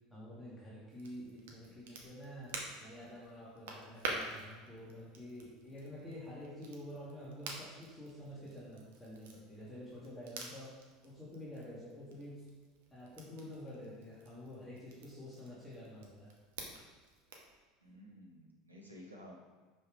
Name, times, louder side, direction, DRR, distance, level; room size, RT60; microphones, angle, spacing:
voice 1, 0.1-10.7 11.0-12.4 12.9-16.3, equal, 10° left, -8 dB, 2.0 m, -49 dB
Crackle, 0.9-17.5, right 3 dB, 65° right, 1.1 m, -49 dB
voice 2, 17.8-19.3, equal, 90° right, -3 dB, 1.3 m, -53 dB
5.5 x 5.4 x 4.7 m, 1.3 s
figure-of-eight pair, 70°, 0 cm